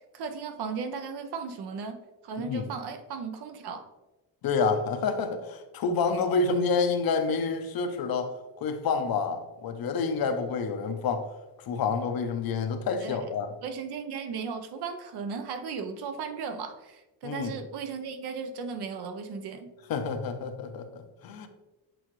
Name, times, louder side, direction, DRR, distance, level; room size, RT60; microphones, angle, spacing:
voice 1, 0.0-3.9 13.0-13.2 13.6-19.7, right 5 dB, 65° right, 7 dB, 0.9 m, -36 dB
voice 2, 2.4-2.7 4.4-11.2 11.6-13.5 17.2-17.5 19.9-21.5, left 4 dB, 55° left, 7 dB, 0.8 m, -28 dB
7.9 x 3.8 x 3.1 m, 1.0 s
cardioid pair, 105°, 42 cm